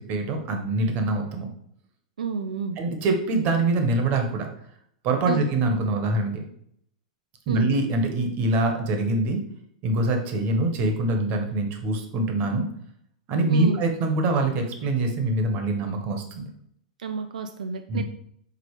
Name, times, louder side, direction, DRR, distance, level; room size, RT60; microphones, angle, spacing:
voice 1, 0.1-1.5 2.8-4.5 5.0-6.5 7.5-9.4 9.8-12.7 13.3-16.5 17.9-18.0, right 2 dB, 45° right, 4 dB, 1.4 m, -24 dB
voice 2, 2.2-2.8 5.3-5.5 7.5-7.7 13.5-13.8 17.0-18.0, right 5 dB, 90° right, 7 dB, 0.4 m, -30 dB
5.4 x 3.7 x 4.9 m, 0.69 s
hypercardioid pair, 115°, 4 cm